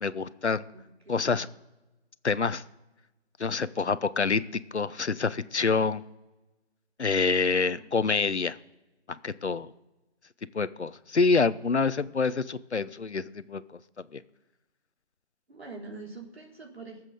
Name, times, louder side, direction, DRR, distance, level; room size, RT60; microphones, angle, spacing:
voice 1, 0.0-0.6 1.1-1.5 2.2-2.6 3.4-4.4 4.7-6.0 7.0-8.6 9.2-9.7 10.5-13.6 14.1-14.2, left 4 dB, 75° left, 15 dB, 0.9 m, -26 dB
voice 2, 0.7-1.4 7.4-7.9 15.5-17.0, right 3 dB, 60° right, 0 dB, 3.4 m, -45 dB
16.0 x 7.5 x 6.5 m, 1.1 s
figure-of-eight pair, 175°, 34 cm